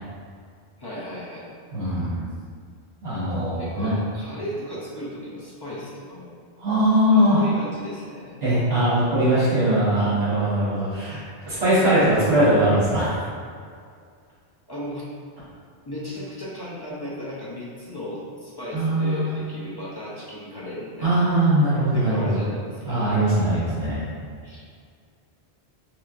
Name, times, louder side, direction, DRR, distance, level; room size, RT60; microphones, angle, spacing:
voice 1, 0.8-1.5 3.5-6.3 7.1-8.4 14.7-15.1 15.9-21.3 21.9-23.0 24.4-24.6, left 1 dB, 40° left, -8 dB, 0.3 m, -35 dB
voice 2, 1.7-2.2 3.0-3.9 6.6-7.4 8.4-11.2 11.5-13.2 18.7-19.3 21.0-22.4 22.8-24.0, right 1 dB, 65° right, -13 dB, 1.3 m, -21 dB
3.3 x 3.1 x 2.4 m, 2.1 s
omnidirectional pair, 1.1 m